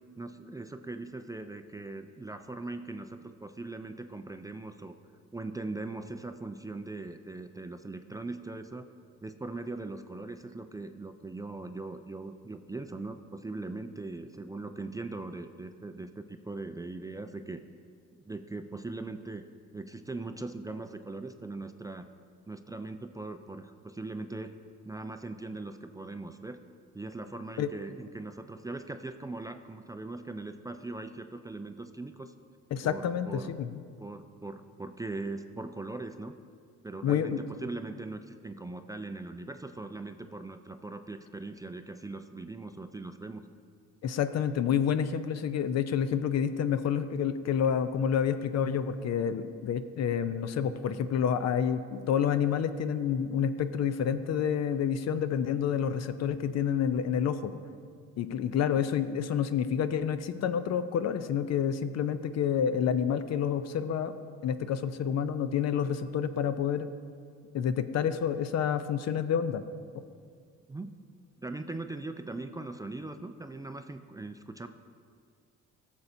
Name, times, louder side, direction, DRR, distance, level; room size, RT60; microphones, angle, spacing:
voice 1, 0.2-5.0 5.3-8.9 9.2-17.6 18.3-19.4 19.7-22.1 22.5-24.5 24.8-26.6 26.9-32.3 32.8-33.5 34.0-36.4 36.8-43.4 70.7-71.0 71.4-74.7, right 2 dB, 10° right, 7 dB, 0.3 m, -40 dB
voice 2, 32.7-33.7 37.0-37.4 44.0-57.6 58.2-64.1 64.4-66.9 67.5-69.6, left 8 dB, 60° left, 12 dB, 0.5 m, -29 dB
16.0 x 7.1 x 2.7 m, 2.1 s
cardioid pair, 90°, 30 cm